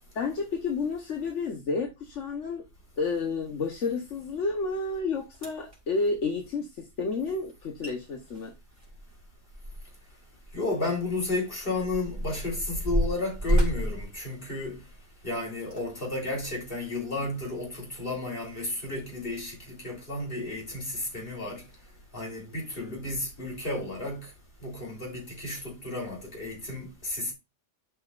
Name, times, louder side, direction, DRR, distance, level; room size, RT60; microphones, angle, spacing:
voice 1, 0.1-2.6 3.0-8.5, left 4 dB, 75° left, 1.4 m, -30 dB
sound 1, 4.9-5.0 5.3-5.8 7.5-7.6 7.8-7.9 8.3-10.1 10.4-10.5 11.3-15.0 15.6-15.8 16.4-16.5, equal, 25° right, 3.5 m, -30 dB
voice 2, 10.5-14.8 15.2-21.6 22.1-24.3 24.6-27.3, left 2 dB, 50° left, 3.7 m, -33 dB
11.5 x 5.6 x 2.5 m
omnidirectional pair, 1.2 m